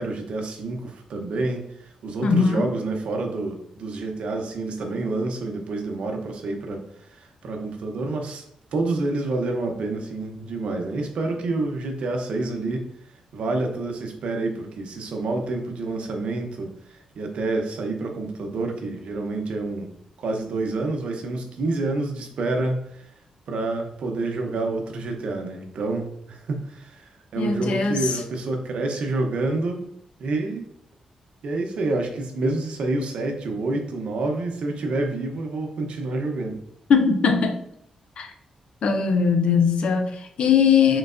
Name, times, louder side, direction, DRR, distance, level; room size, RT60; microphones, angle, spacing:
voice 1, 0.0-6.8 7.1-8.4 8.7-12.9 13.3-19.9 20.2-23.0 23.5-29.8 30.2-30.6 31.4-36.6, right 2 dB, 70° right, 4 dB, 0.8 m, -28 dB
voice 2, 2.2-2.7 27.4-28.2 36.9-37.6 38.2-38.3 38.8-41.0, left 6 dB, 65° left, 6 dB, 0.6 m, -20 dB
4.5 x 3.9 x 2.6 m, 0.71 s
wide cardioid pair, 135°, 2 cm